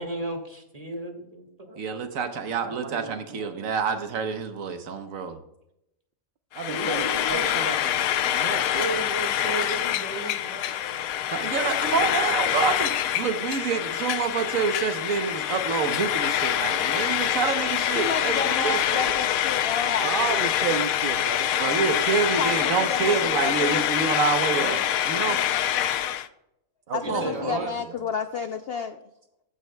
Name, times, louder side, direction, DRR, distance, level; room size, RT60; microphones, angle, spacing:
voice 1, 0.0-1.8 6.7-7.8 8.7-12.1 24.5-24.8 27.0-27.7, right 2 dB, 25° right, 3 dB, 1.7 m, -35 dB
voice 2, 1.8-5.4 11.3-19.2 21.6-24.8 25.1-25.4 27.1-27.6, right 5 dB, 75° right, 8 dB, 1.3 m, -27 dB
voice 3, 2.6-3.6 6.5-9.0 20.0-21.5 26.9-27.7, right 7 dB, 50° right, 6 dB, 0.6 m, -33 dB
Frying (food), 6.5-26.3, left 11 dB, 80° left, 1.0 m, -25 dB
voice 4, 17.9-20.5 22.4-23.9 26.9-29.0, left 5 dB, 65° left, 7 dB, 0.6 m, -31 dB
15.0 x 9.3 x 2.2 m, 0.83 s
omnidirectional pair, 1.5 m